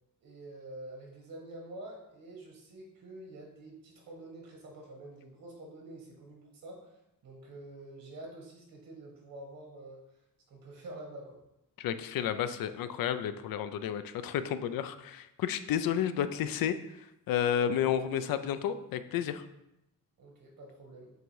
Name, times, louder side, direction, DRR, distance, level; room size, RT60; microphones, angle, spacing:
voice 1, 0.2-6.9 7.2-10.0 10.5-11.4 20.2-21.1, right 1 dB, 75° right, 0 dB, 2.0 m, -47 dB
voice 2, 11.8-16.8 17.3-19.4, left 9 dB, 85° left, 11 dB, 0.5 m, -31 dB
7.7 x 2.6 x 4.7 m, 0.86 s
cardioid pair, 100°, 34 cm